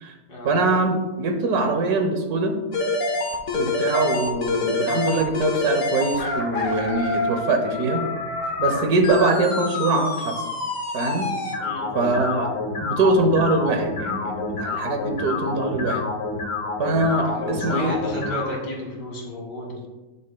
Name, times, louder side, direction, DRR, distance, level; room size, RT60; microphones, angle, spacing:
voice 1, 0.4-2.6 3.5-8.1 8.6-10.3 10.9-11.3 11.9-12.5 12.8-16.0 16.8-17.9, right 2 dB, 70° right, 5 dB, 1.5 m, -23 dB
sound 1, 2.7-18.5, left 3 dB, 55° left, 1.3 m, -27 dB
voice 2, 11.6-12.0 17.2-19.9, left 1 dB, 90° left, -2 dB, 2.7 m, -32 dB
11.0 x 6.4 x 2.2 m, 1.1 s
omnidirectional pair, 1.7 m